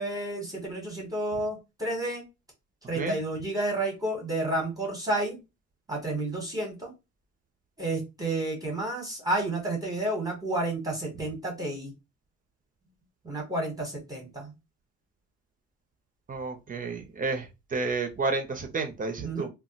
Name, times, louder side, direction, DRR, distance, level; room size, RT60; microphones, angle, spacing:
voice 1, 0.0-2.2 2.9-5.4 5.9-6.9 7.8-11.9 13.2-14.5 19.2-19.5, right 2 dB, 10° right, 0 dB, 0.8 m, -31 dB
voice 2, 16.3-19.5, right 3 dB, 30° right, 5 dB, 0.4 m, -31 dB
2.2 x 2.0 x 3.8 m, 0.25 s
cardioid pair, 140°, 31 cm